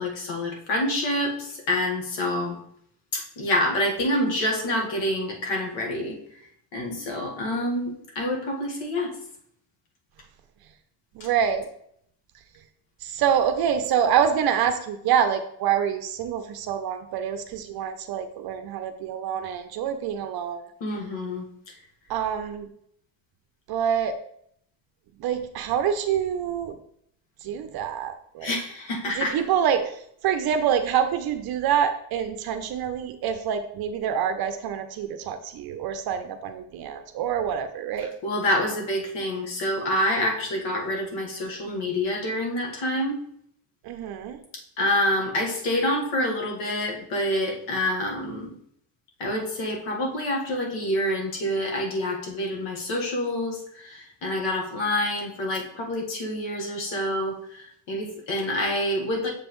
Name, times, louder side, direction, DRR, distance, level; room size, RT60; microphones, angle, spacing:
voice 1, 0.0-2.6 3.1-6.2 6.7-9.1 20.8-21.4 28.4-29.4 38.2-43.2 44.8-48.5 49.2-57.4 57.9-59.3, left 1 dB, 70° left, 1 dB, 1.7 m, -27 dB
voice 2, 11.2-11.7 13.0-20.6 22.1-22.7 23.7-24.1 25.2-26.7 27.4-28.5 29.1-29.9 30.2-38.1 43.8-44.4, right 8 dB, 55° right, 7 dB, 0.6 m, -26 dB
6.9 x 5.2 x 3.1 m, 0.69 s
cardioid pair, 135°, 47 cm